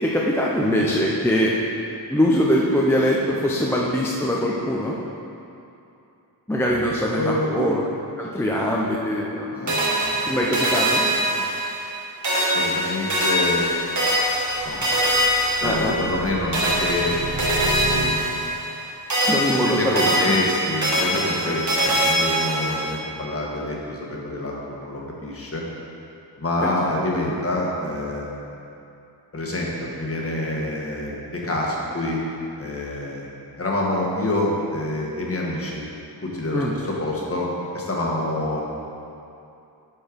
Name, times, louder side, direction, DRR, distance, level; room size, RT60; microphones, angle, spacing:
voice 1, 0.0-1.5 2.1-5.0 6.5-7.8 8.2-9.5 10.2-11.1 15.6-16.0 19.3-20.4 21.4-21.6 26.6-26.7 27.3-27.4 36.5-36.7, equal, 5° left, -4 dB, 0.5 m, -22 dB
voice 2, 7.1-7.8 9.5-10.4 11.3-11.4 12.5-13.7 14.6-14.8 15.6-17.1 19.2-19.3 19.6-25.6 26.4-28.3 29.3-32.2 32.6-33.3 33.6-35.8 36.2-37.5 37.7-38.6, left 1 dB, 35° left, -3 dB, 1.4 m, -27 dB
sound 1, 9.7-12.0 12.2-16.2 16.5-18.8 19.1-23.0, equal, 40° right, 1.7 m, -23 dB
sound 2, 13.8-18.7, right 1 dB, 65° right, 1.0 m, -33 dB
10.5 x 4.5 x 5.1 m, 2.7 s
wide cardioid pair, 160°, 43 cm